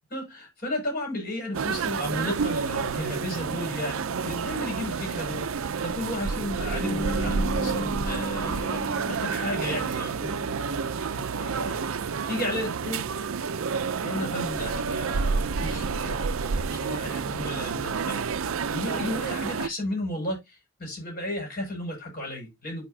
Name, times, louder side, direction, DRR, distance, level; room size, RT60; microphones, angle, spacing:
voice 1, 0.1-11.8 12.3-13.0 14.0-22.9, left 1 dB, 40° left, 5.9 m, -34 dB
sound 1, 1.5-19.7, right 5 dB, 75° right, 0.5 m, -29 dB
Bass guitar, 6.8-10.8, left 1 dB, 15° left, 1.1 m, -35 dB
11.5 x 5.0 x 2.7 m
head